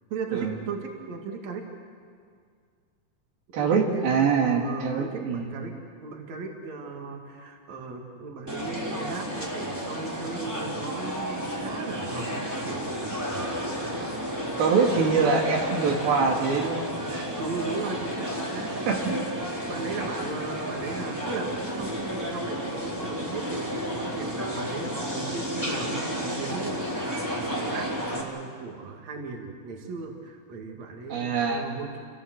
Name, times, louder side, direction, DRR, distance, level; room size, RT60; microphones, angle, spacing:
voice 1, 0.1-1.6 3.6-5.7 6.0-13.6 14.0-14.1 17.4-19.0 19.7-32.0, right 4 dB, 50° right, 2 dB, 3.3 m, -37 dB
voice 2, 3.5-5.5 14.6-17.3 18.9-19.0 31.1-31.7, right 5 dB, 80° right, 1 dB, 3.9 m, -24 dB
sound 1, 8.5-28.2, equal, 5° right, 3.4 m, -32 dB
29.5 x 18.0 x 7.8 m, 2.1 s
omnidirectional pair, 4.3 m